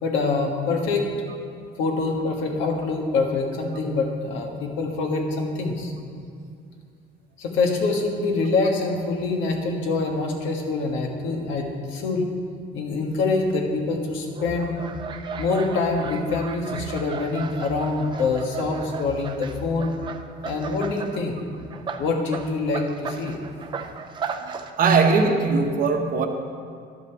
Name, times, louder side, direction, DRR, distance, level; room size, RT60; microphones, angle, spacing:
voice 1, 0.0-1.1 1.8-5.9 7.4-12.3 12.7-14.8 15.4-19.9 20.4-21.4 22.0-23.4, left 3 dB, 80° left, 2 dB, 1.5 m, -25 dB
sound 1, 14.3-21.1 21.5-24.7, right 5 dB, 25° right, 0.4 m, -35 dB
voice 2, 24.4-26.3, right 4 dB, 50° right, 4 dB, 0.9 m, -20 dB
11.0 x 5.3 x 6.7 m, 2.3 s
cardioid pair, 180°, 19 cm